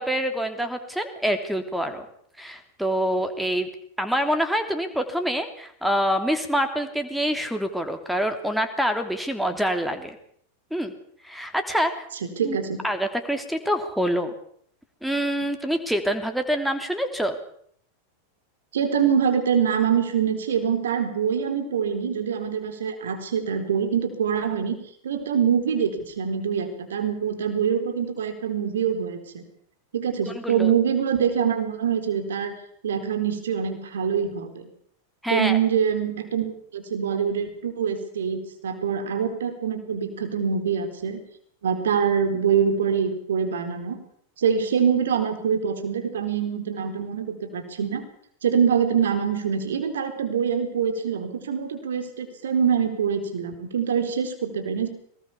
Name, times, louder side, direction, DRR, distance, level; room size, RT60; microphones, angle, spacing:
voice 1, 0.0-2.0 2.4-3.7 4.0-10.2 10.7-10.9 11.2-12.0 12.4-12.6 12.8-14.3 15.0-17.4 30.2-30.7 35.2-35.6, equal, ahead, 7 dB, 3.2 m, -26 dB
voice 2, 12.4-12.8 18.7-24.8 25.0-29.4 29.9-32.5 32.8-34.7 35.3-41.2 41.6-44.0 44.4-48.0 48.4-54.9, right 7 dB, 65° right, 7 dB, 4.2 m, -24 dB
23.0 x 19.5 x 7.2 m, 0.65 s
figure-of-eight pair, 90°, 0 cm